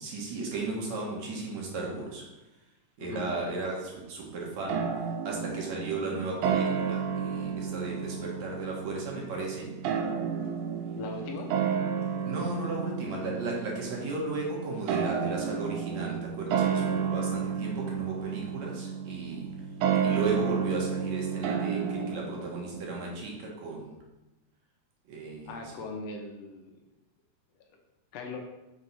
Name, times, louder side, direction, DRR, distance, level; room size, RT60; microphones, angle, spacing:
voice 1, 0.0-2.2 3.0-4.8 5.2-9.7 12.2-19.5 20.0-23.9 25.1-25.6, right 3 dB, 65° right, -2 dB, 2.6 m, -35 dB
sound 1, 4.7-23.2, right 7 dB, 85° right, 2.2 m, -31 dB
voice 2, 10.9-11.5 25.5-26.7 28.1-28.4, left 3 dB, 70° left, 2 dB, 1.7 m, -39 dB
6.1 x 4.6 x 5.6 m, 1.0 s
omnidirectional pair, 3.6 m